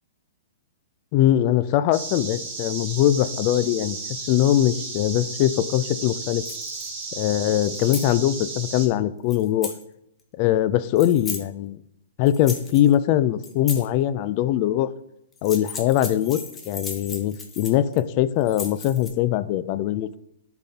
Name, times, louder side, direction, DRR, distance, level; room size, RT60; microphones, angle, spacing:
voice 1, 1.1-4.0 4.3-6.4 7.2-9.7 10.4-11.8 12.2-14.9 15.4-20.1, left 12 dB, 35° left, 15 dB, 0.3 m, -22 dB
sound 1, 1.9-8.9, right 4 dB, 35° right, 2.7 m, -34 dB
sound 2, 6.5-7.0 7.6-8.1 9.3-9.8 11.0-11.4 12.3-12.9 13.4-13.9 15.3-18.0 18.4-19.1, left 4 dB, 15° left, 0.8 m, -36 dB
10.5 x 4.0 x 2.8 m, 0.81 s
hypercardioid pair, 155°, 0 cm